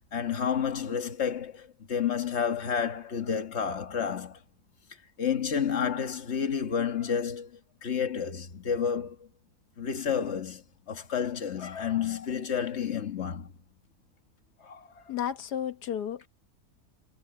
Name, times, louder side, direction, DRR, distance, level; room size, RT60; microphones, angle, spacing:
voice 1, 0.1-4.4 5.2-9.3 9.8-13.5 14.6-15.1, left 7 dB, 45° left, 1.8 m, -30 dB
voice 2, 15.1-16.3, left 9 dB, 90° left, 1.7 m, -32 dB
omnidirectional pair, 1.7 m